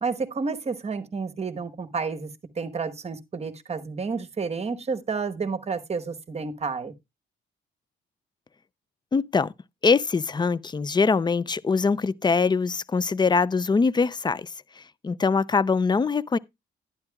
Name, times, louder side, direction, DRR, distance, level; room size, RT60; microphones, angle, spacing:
voice 1, 0.0-2.3 2.6-6.9, right 4 dB, 30° right, 1.1 m, -30 dB
voice 2, 9.1-9.5 9.8-14.5 15.0-16.4, left 4 dB, 20° left, 0.5 m, -23 dB
11.5 x 9.8 x 2.3 m
cardioid pair, 90°, 20 cm